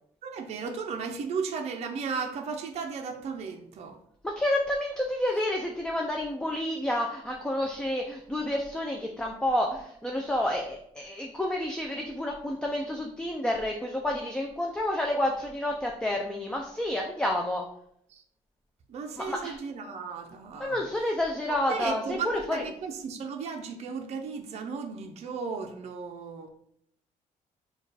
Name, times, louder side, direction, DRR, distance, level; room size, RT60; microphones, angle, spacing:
voice 1, 0.2-4.0 18.1-18.2 18.9-20.8 21.5-26.5, right 5 dB, 50° right, 3 dB, 0.5 m, -35 dB
voice 2, 4.2-17.6 19.3-19.6 20.6-22.6, left 1 dB, 5° left, 1 dB, 0.3 m, -29 dB
4.5 x 2.3 x 4.7 m, 0.69 s
cardioid pair, 170°, 14 cm